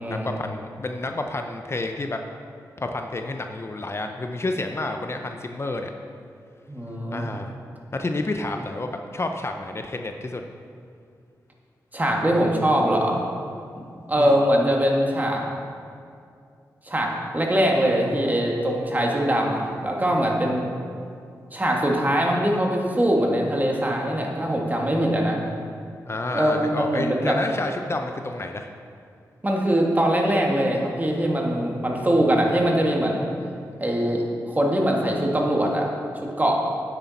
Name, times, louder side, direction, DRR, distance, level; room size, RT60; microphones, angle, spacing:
voice 1, 0.0-2.2 2.8-5.9 7.1-7.5 7.9-10.4 14.2-14.4 26.1-28.7, left 2 dB, 35° left, 4 dB, 0.6 m, -30 dB
voice 2, 6.7-7.3 11.9-13.2 14.1-15.4 16.9-20.6 21.5-25.4 26.3-27.4 29.4-33.3 33.8-34.2 34.5-35.9 36.4-36.6, equal, 25° right, -1 dB, 1.9 m, -22 dB
9.2 x 8.3 x 4.1 m, 2.4 s
cardioid pair, 45°, 7 cm